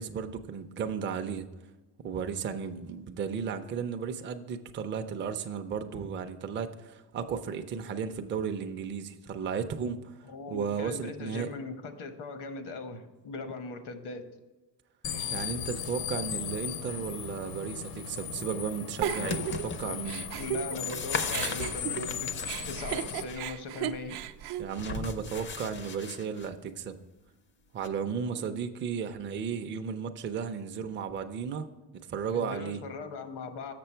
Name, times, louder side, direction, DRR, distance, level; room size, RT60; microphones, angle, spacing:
voice 1, 0.0-1.4 2.0-10.1 10.5-11.5 15.3-20.2 24.6-27.0 27.7-31.7 32.1-32.8, right 6 dB, 30° right, 6 dB, 0.4 m, -34 dB
voice 2, 10.2-14.2 19.8-20.0 20.4-22.3 22.6-24.2 32.3-33.7, left 3 dB, 80° left, 7 dB, 1.1 m, -40 dB
sound 1, 15.0-23.2, left 9 dB, 65° left, 0.7 m, -37 dB
sound 2, 18.9-19.8 20.4-23.4 24.7-26.5 27.8-27.9, left 4 dB, 30° left, 0.4 m, -37 dB
Giggle, 19.0-21.0 21.3-25.5, right 10 dB, 75° right, 0.6 m, -35 dB
6.8 x 6.8 x 4.4 m, 1.1 s
cardioid pair, 160°, 40 cm